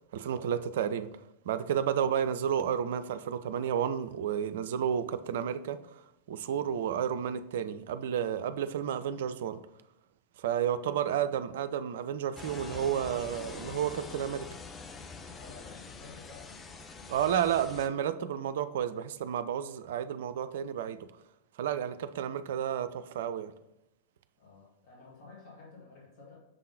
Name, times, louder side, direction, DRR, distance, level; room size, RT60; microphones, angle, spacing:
voice 1, 0.1-1.1 1.5-6.0 6.3-9.6 10.4-14.5 17.1-21.1 21.6-23.5, right 9 dB, 55° right, 12 dB, 0.3 m, -31 dB
sound 1, 12.3-17.9, left 4 dB, 20° left, 0.5 m, -45 dB
voice 2, 15.3-17.4 24.4-26.4, left 3 dB, 45° left, -4 dB, 1.8 m, -52 dB
6.7 x 3.6 x 4.0 m, 0.94 s
figure-of-eight pair, 90°, 0 cm